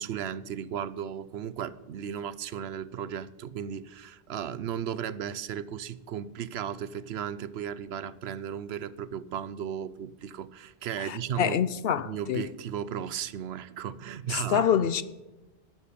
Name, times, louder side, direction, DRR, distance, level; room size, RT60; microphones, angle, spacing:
voice 1, 0.0-11.6 12.1-14.7, right 9 dB, 80° right, 0.9 m, -35 dB
voice 2, 11.0-12.5 14.3-15.0, left 9 dB, 70° left, 0.8 m, -26 dB
12.5 x 7.2 x 9.9 m
omnidirectional pair, 1.1 m